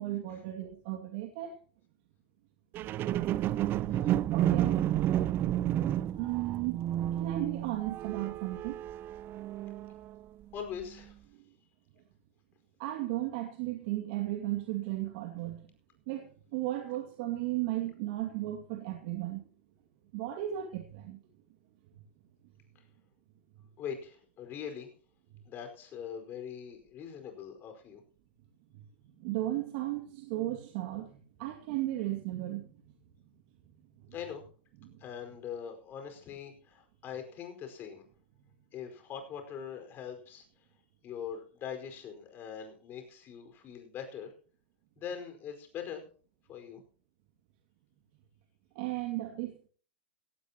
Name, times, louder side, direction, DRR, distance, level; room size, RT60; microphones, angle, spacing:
voice 1, 0.0-1.5 4.3-4.8 6.1-8.8 12.8-15.7 16.1-19.5 20.1-21.2 28.7-28.8 29.2-32.8 34.1-34.2 34.8-34.9 48.7-49.7, right 15 dB, 55° right, 4 dB, 2.2 m, -35 dB
sound 1, 2.7-10.2 10.8-10.9, right 12 dB, 35° right, 0.7 m, -31 dB
voice 2, 3.9-4.2 10.5-11.2 22.7-22.8 23.8-24.9 25.4-28.0 34.1-34.4 35.0-38.0 38.7-40.6 41.0-44.3 45.0-46.0 46.5-46.8, left 8 dB, 35° left, 5 dB, 4.9 m, -42 dB
16.5 x 16.0 x 2.9 m, 0.42 s
hypercardioid pair, 110°, 6 cm